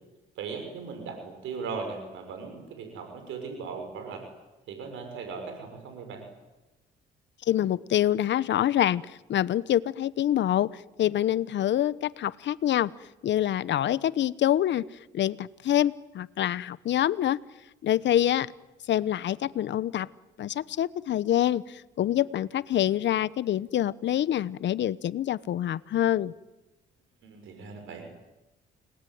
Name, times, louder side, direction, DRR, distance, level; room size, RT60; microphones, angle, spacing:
voice 1, 0.3-4.3 4.7-6.2 27.2-28.1, right 5 dB, 85° right, 5 dB, 6.5 m, -38 dB
voice 2, 7.5-12.9 13.2-14.8 15.1-17.4 17.8-18.5 18.9-20.1 20.4-26.3, left 11 dB, 65° left, 18 dB, 0.9 m, -26 dB
30.0 x 20.0 x 9.5 m, 1.0 s
cardioid pair, 90°, 20 cm